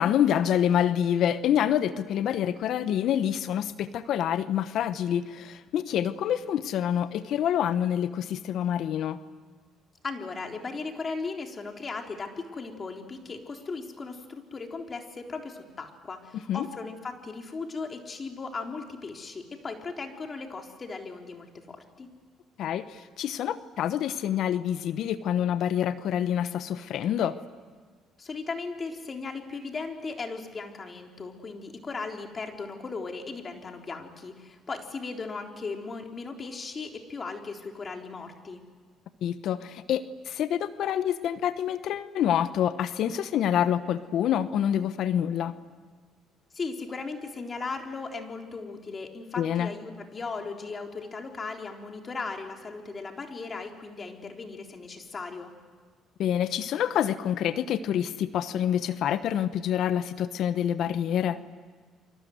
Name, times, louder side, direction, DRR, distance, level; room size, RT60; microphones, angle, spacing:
voice 1, 0.0-9.2 16.5-16.7 22.6-27.3 39.2-45.5 49.4-49.7 56.2-61.4, left 10 dB, 65° left, 13 dB, 1.0 m, -27 dB
voice 2, 10.0-22.1 28.2-38.6 46.5-55.5, left 4 dB, 35° left, 3 dB, 3.8 m, -37 dB
29.5 x 24.5 x 7.9 m, 1.5 s
supercardioid pair, 80°, 0 cm